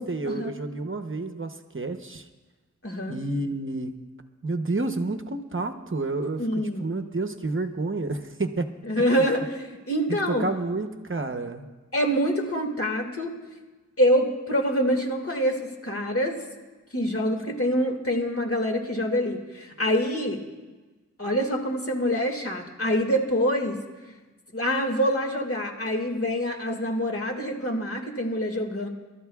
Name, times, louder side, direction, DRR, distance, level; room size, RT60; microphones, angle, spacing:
voice 1, 0.0-2.3 3.1-4.0 4.4-6.5 6.8-8.7 10.1-11.7, right 2 dB, 45° right, 6 dB, 0.8 m, -30 dB
voice 2, 2.8-3.2 6.4-6.9 8.9-10.4 11.9-13.4 14.0-16.4 16.9-20.4 21.2-23.8 24.5-28.9, equal, 50° left, 2 dB, 2.0 m, -25 dB
29.0 x 12.5 x 2.4 m, 1.2 s
wide cardioid pair, 50°, 30 cm